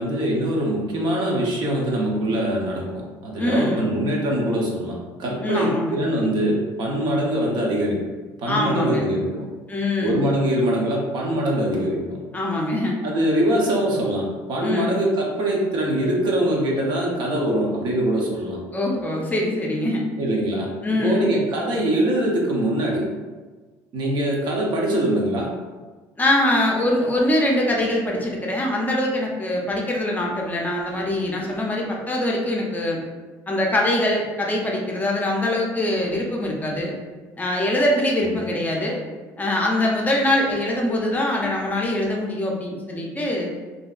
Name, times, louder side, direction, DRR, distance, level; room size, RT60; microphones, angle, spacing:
voice 1, 0.0-8.0 8.4-9.5 10.0-12.2 13.0-18.6 20.1-20.7 21.0-23.0 23.9-25.5, right 1 dB, 55° right, -2 dB, 0.7 m, -23 dB
voice 2, 3.4-3.9 5.4-6.0 8.5-9.1 9.7-10.2 12.3-13.0 14.6-15.0 18.7-20.0 20.8-21.3 26.2-33.0 33.5-36.9 37.4-39.0 39.4-43.5, left 1 dB, 20° left, -1 dB, 0.5 m, -23 dB
2.6 x 2.1 x 2.4 m, 1.3 s
supercardioid pair, 75°, 9 cm